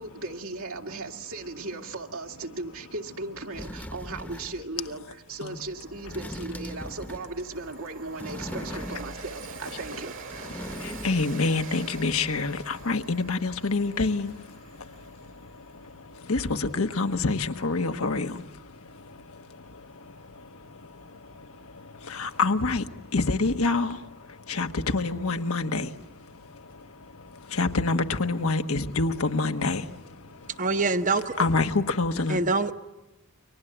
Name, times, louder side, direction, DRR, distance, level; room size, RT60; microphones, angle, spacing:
voice 1, 0.0-10.2, right 3 dB, 80° right, 2.4 m, -37 dB
sound 1, 3.1-3.2 3.5-4.7 6.0-7.4 8.2-9.3 9.7-11.4 11.6-11.7, equal, 10° left, 1.0 m, -39 dB
Train, 4.8-4.9 5.3-15.7, right 4 dB, 60° right, 2.1 m, -45 dB
voice 2, 10.8-14.3 16.3-18.3 22.1-22.8 23.1-24.0 24.5-25.9 27.5-29.8 31.4-32.4, left 3 dB, 85° left, 1.3 m, -26 dB
voice 3, 30.6-31.4 32.3-32.7, right 3 dB, 35° right, 0.9 m, -25 dB
29.5 x 24.5 x 8.0 m
head